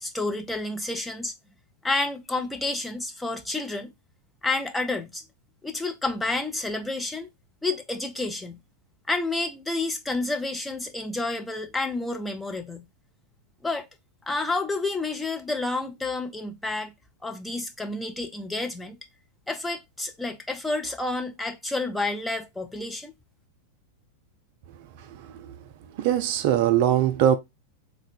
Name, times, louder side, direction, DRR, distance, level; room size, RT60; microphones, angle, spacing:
voice 1, 0.0-1.3 1.8-3.9 4.4-5.2 5.6-7.3 7.6-8.6 9.1-12.9 13.6-13.9 14.2-16.9 17.2-19.0 19.5-23.1, left 2 dB, 5° left, 0.6 m, -30 dB
voice 2, 26.0-27.4, right 10 dB, 50° right, 0.4 m, -21 dB
3.6 x 2.3 x 4.2 m
figure-of-eight pair, 90°, 0 cm